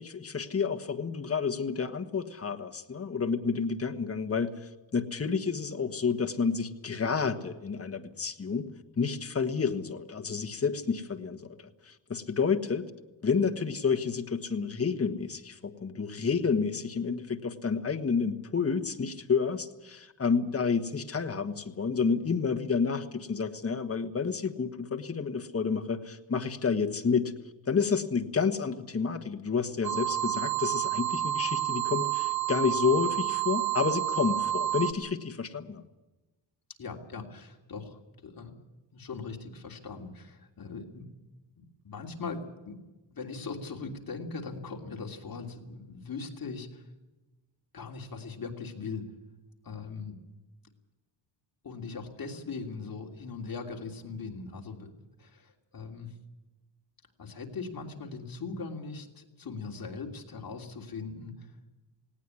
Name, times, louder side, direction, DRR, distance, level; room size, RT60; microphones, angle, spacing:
voice 1, 0.0-8.7 9.0-12.9 13.2-27.3 27.6-35.8, left 5 dB, 30° left, 6 dB, 1.5 m, -30 dB
sound 1, 29.8-34.9, right 11 dB, 55° right, 1.3 m, -29 dB
voice 2, 36.8-38.6 38.9-41.1 41.6-46.9 47.7-49.1 49.6-50.2 51.6-56.2 57.2-61.5, left 4 dB, 50° left, 2 dB, 3.1 m, -40 dB
19.0 x 17.5 x 9.7 m, 1.1 s
wide cardioid pair, 165°, 44 cm